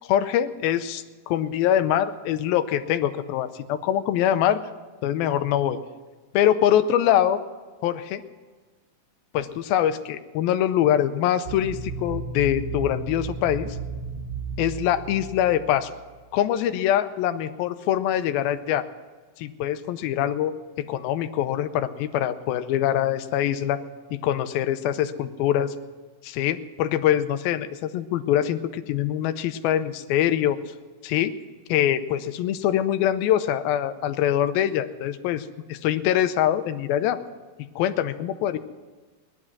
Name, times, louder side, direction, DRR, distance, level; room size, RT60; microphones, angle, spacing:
voice 1, 0.1-4.6 5.0-5.8 6.3-7.4 7.8-8.2 9.3-13.8 14.6-15.9 16.3-18.9 19.4-23.8 24.1-25.7 26.2-30.6 31.0-31.3 31.7-37.2 37.8-38.6, left 11 dB, 90° left, 10 dB, 2.6 m, -24 dB
sound 1, 11.5-16.1, right 5 dB, 60° right, 2.0 m, -34 dB
18.5 x 12.0 x 6.1 m, 1.3 s
omnidirectional pair, 4.1 m